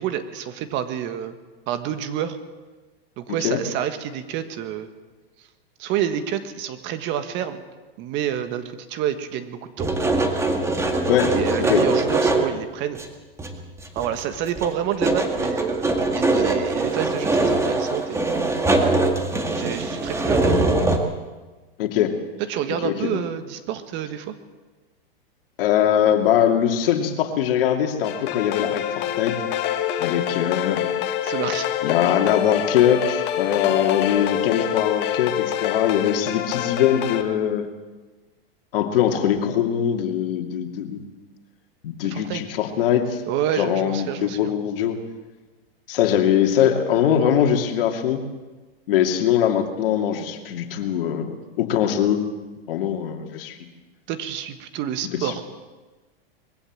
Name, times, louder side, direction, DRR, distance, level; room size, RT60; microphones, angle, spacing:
voice 1, 0.0-1.4 1.7-2.4 3.2-4.9 5.4-5.5 5.8-7.6 8.0-9.9 11.4-13.0 13.9-18.3 19.5-20.6 22.4-24.3 31.2-31.7 42.0-42.4 43.3-44.5 54.1-55.4, right 10 dB, 40° right, 10 dB, 1.6 m, -28 dB
sound 1, 9.8-12.6 12.9-13.1 13.4-14.2 14.5-21.0, right 2 dB, 10° right, 2.0 m, -22 dB
voice 2, 11.1-11.8 21.8-22.2 22.8-23.2 25.6-29.4 30.0-30.9 31.8-37.7 38.7-41.0 41.8-43.2 43.6-45.0 45.9-48.2 48.9-52.3 52.7-53.6 55.2-55.3, left 9 dB, 65° left, 5 dB, 2.7 m, -22 dB
sound 2, 28.0-37.2, left 10 dB, 35° left, 1.8 m, -26 dB
21.5 x 16.0 x 7.5 m, 1.2 s
hypercardioid pair, 140°, 31 cm